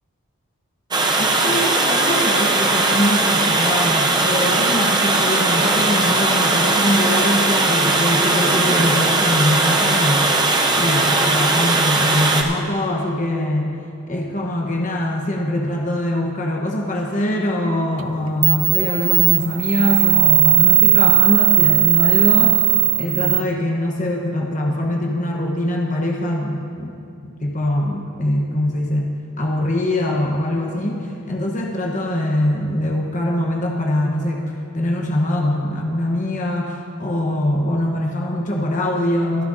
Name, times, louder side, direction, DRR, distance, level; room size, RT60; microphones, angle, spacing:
Water, 0.9-12.4, right 2 dB, 20° right, 0.8 m, -18 dB
voice 1, 1.2-10.3 10.7-13.7 14.1-22.6 23.0-34.4 34.7-39.4, left 1 dB, 35° left, 0 dB, 1.0 m, -23 dB
sound 1, 18.0-18.1 18.4-23.4, right 13 dB, 70° right, 0.4 m, -16 dB
24.5 x 10.0 x 2.7 m, 2.7 s
head